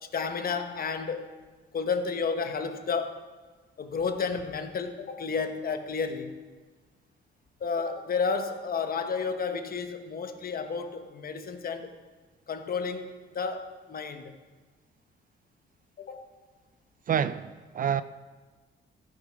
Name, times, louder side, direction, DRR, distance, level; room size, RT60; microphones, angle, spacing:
voice 1, 0.1-1.3 1.7-3.2 3.8-6.4 7.6-11.9 12.5-14.3 16.0-16.2, left 5 dB, 50° left, 1.1 m, -31 dB
voice 2, 17.1-18.0, right 8 dB, 45° right, 0.4 m, -28 dB
15.0 x 6.4 x 5.2 m
cardioid pair, 90°, 20 cm